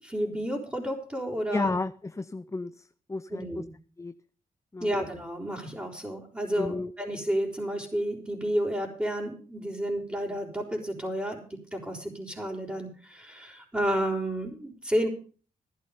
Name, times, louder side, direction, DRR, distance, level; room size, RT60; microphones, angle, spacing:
voice 1, 0.0-1.7 3.3-3.7 4.8-11.4 11.7-15.1, equal, 10° right, -5 dB, 4.4 m, -31 dB
voice 2, 1.5-3.6 4.0-4.1 4.7-4.9 6.6-6.9, left 3 dB, 20° left, 12 dB, 0.6 m, -32 dB
14.5 x 11.0 x 5.1 m, 0.40 s
cardioid pair, 65°, 16 cm